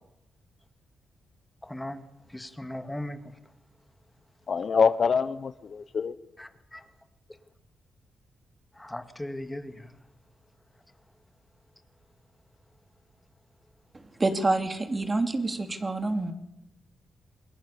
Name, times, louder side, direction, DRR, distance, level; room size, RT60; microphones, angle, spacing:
voice 1, 1.6-2.0 2.3-3.2 6.4-6.9 8.7-9.9, left 1 dB, 10° left, 2.0 m, -38 dB
voice 2, 4.5-6.1, left 5 dB, 50° left, 1.0 m, -25 dB
voice 3, 14.2-16.3, right 2 dB, 25° right, 3.0 m, -27 dB
28.5 x 21.5 x 7.1 m
cardioid pair, 100°, 0 cm